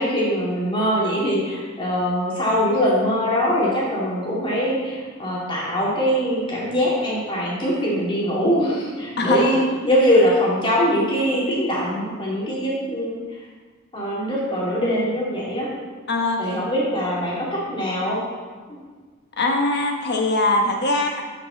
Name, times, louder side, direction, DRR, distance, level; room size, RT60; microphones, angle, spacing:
voice 1, 0.0-13.4 13.9-15.7 16.4-18.2 18.7-18.8, equal, 25° left, -6 dB, 2.7 m, -22 dB
voice 2, 9.2-9.7 16.1-16.4 19.4-21.2, left 2 dB, 55° left, 2 dB, 1.2 m, -21 dB
13.0 x 5.8 x 4.0 m, 1.5 s
head